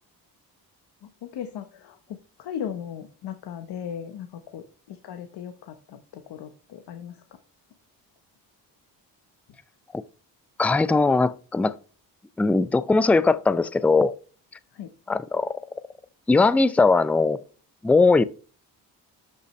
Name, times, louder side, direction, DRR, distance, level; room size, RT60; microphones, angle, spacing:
voice 1, 1.2-7.2 14.7-14.9, left 9 dB, 75° left, 1.0 m, -37 dB
voice 2, 10.6-11.7 12.4-14.1 15.1-15.6 16.3-17.4 17.8-18.2, left 3 dB, 5° left, 0.3 m, -20 dB
12.5 x 5.6 x 3.1 m
cardioid pair, 90°, 40 cm